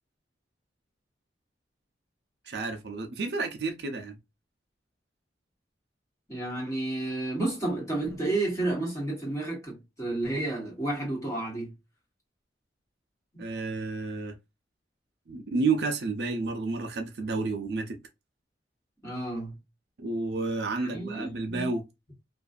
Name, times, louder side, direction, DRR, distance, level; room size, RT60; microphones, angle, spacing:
voice 1, 2.5-4.2 13.4-14.3 15.3-18.0 20.0-21.8, right 3 dB, 65° right, 0.5 m, -30 dB
voice 2, 6.3-11.7 13.3-13.4 19.0-19.6 20.8-21.7, right 2 dB, 15° left, 1.1 m, -31 dB
2.5 x 2.3 x 2.3 m
head